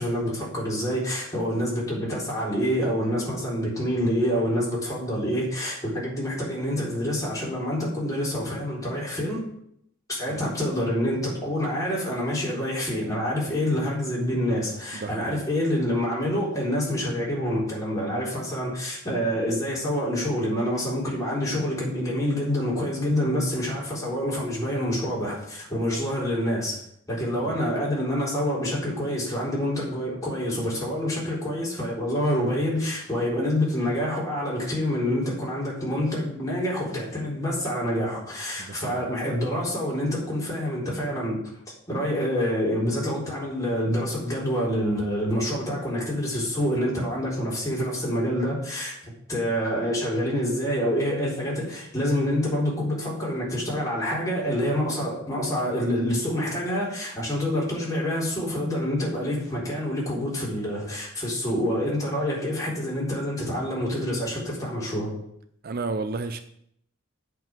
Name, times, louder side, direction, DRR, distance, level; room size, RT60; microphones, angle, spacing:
voice 1, 0.0-9.4 10.1-26.8 27.1-41.5 41.9-49.0 49.3-65.1, equal, 15° left, -6 dB, 3.9 m, -27 dB
voice 2, 14.9-15.5 27.4-27.6 38.6-39.0 65.6-66.4, right 3 dB, 50° right, 10 dB, 0.5 m, -33 dB
8.0 x 5.4 x 7.5 m, 0.72 s
head